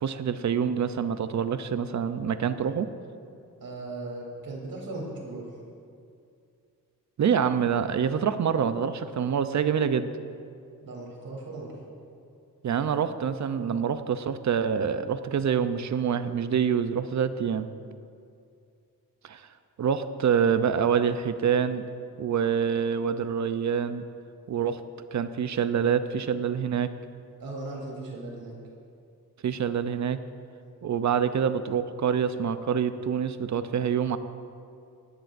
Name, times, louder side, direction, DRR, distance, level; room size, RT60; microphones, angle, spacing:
voice 1, 0.0-2.9 7.2-10.1 12.6-17.7 19.2-19.5 19.8-21.8 22.2-24.0 24.5-24.8 25.1-26.9 29.4-30.2 30.8-34.2, right 7 dB, 55° right, 11 dB, 0.6 m, -26 dB
voice 2, 3.6-5.6 10.8-11.8 27.4-28.6, right 2 dB, 80° right, -2 dB, 3.5 m, -37 dB
18.5 x 15.0 x 2.6 m, 2.4 s
wide cardioid pair, 110°, 35 cm